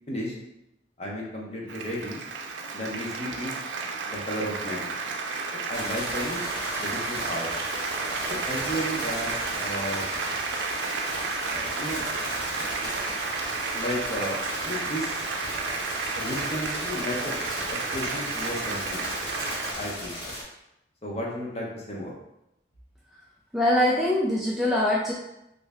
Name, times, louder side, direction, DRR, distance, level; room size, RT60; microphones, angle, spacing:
voice 1, 1.0-3.5 4.1-4.9 5.7-6.4 6.8-7.5 8.3-10.1 11.7-12.0 13.7-15.2 16.1-17.6 17.9-19.1 19.8-20.2 21.0-22.1, equal, 35° left, -3 dB, 0.8 m, -33 dB
Applause, 1.7-19.7, right 4 dB, 90° right, 0.4 m, -32 dB
sound 1, 5.7-20.4, equal, 60° left, 1.4 m, -36 dB
voice 2, 23.5-25.1, left 1 dB, ahead, -5 dB, 0.3 m, -23 dB
3.2 x 2.6 x 3.4 m, 0.86 s
head